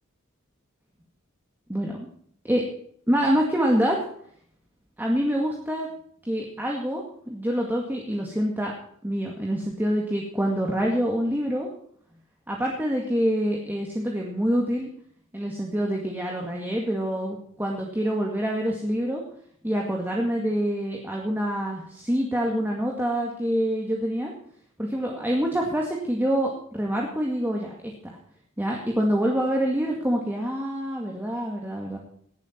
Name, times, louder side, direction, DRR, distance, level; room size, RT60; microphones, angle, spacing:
voice 1, 1.7-2.1 2.4-2.6 3.1-4.0 5.0-5.9 6.3-8.7 9.0-11.7 12.5-14.9 15.3-19.2 19.6-24.3 24.8-28.2 28.6-32.0, equal, 10° right, -1 dB, 2.1 m, -26 dB
18.0 x 11.0 x 4.5 m, 0.62 s
head